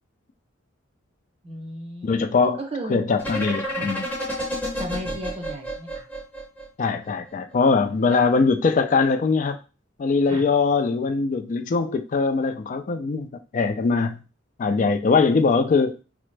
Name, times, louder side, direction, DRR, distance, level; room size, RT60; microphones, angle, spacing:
voice 1, 1.4-2.2 2.7-3.0 3.7-3.9 4.8-6.0 8.1-8.3 10.3-10.4, right 1 dB, 30° right, 2 dB, 0.7 m, -34 dB
voice 2, 2.0-2.6 2.9-4.0 6.8-9.6 10.0-14.2 14.6-16.0, left 4 dB, 40° left, 7 dB, 0.3 m, -21 dB
sound 1, 3.2-7.1, equal, 10° left, 0.7 m, -30 dB
3.4 x 2.0 x 3.2 m, 0.32 s
head